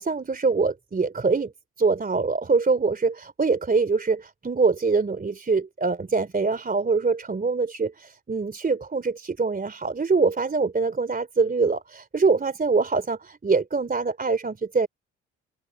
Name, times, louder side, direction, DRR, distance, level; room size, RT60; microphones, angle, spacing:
voice 1, 0.0-1.5 1.8-14.9, right 4 dB, 25° right, 3.0 m, -24 dB
hypercardioid pair, 50°, 33 cm